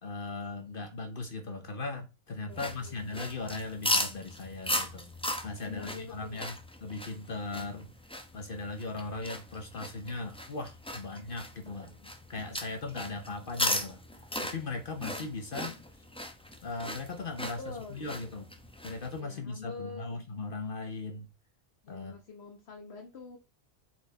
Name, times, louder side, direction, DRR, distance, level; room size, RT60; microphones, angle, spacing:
voice 1, 0.0-5.1 5.4-7.9 8.3-11.9 12.3-14.0 14.4-15.8 16.6-17.6 17.9-18.5 18.8-21.3 21.9-22.2, left 3 dB, 60° left, 1.2 m, -38 dB
voice 2, 2.5-3.0 5.6-6.4 11.9-12.1 17.6-18.3 19.2-20.1 21.8-23.4, left 5 dB, 75° left, 1.5 m, -45 dB
sound 1, 2.5-19.2, left 1 dB, 5° left, 0.8 m, -37 dB
7.9 x 4.6 x 4.2 m
omnidirectional pair, 1.1 m